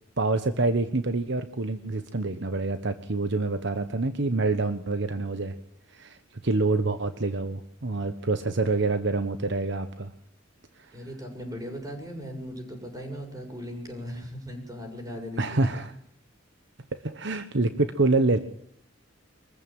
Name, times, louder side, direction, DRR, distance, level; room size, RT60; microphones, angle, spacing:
voice 1, 0.2-5.5 5.9-6.2 6.4-10.1 15.4-15.9 16.9-18.4, right 3 dB, 65° right, 10 dB, 1.2 m, -26 dB
voice 2, 10.9-15.8, equal, 20° right, 3 dB, 7.0 m, -38 dB
24.0 x 15.0 x 9.1 m, 0.67 s
head